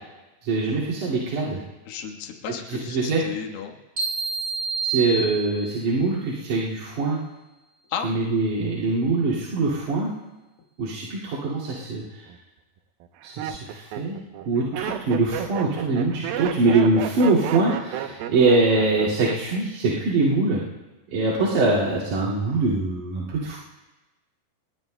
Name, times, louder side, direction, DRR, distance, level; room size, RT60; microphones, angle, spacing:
voice 1, 0.4-1.6 2.7-3.2 4.8-7.2 8.0-10.1 10.8-12.2 13.2-14.2 14.5-20.6 21.1-23.6, right 3 dB, 55° right, -8 dB, 3.6 m, -23 dB
voice 2, 1.9-3.8 7.9-8.2, left 7 dB, 70° left, 1 dB, 3.1 m, -33 dB
sound 1, 4.0-5.9, right 4 dB, 15° right, 3.7 m, -28 dB
Laughter, 12.0-12.4 13.0-19.6 19.9-20.4, right 10 dB, 75° right, 2.5 m, -32 dB
26.0 x 22.0 x 2.2 m, 1.1 s
omnidirectional pair, 4.6 m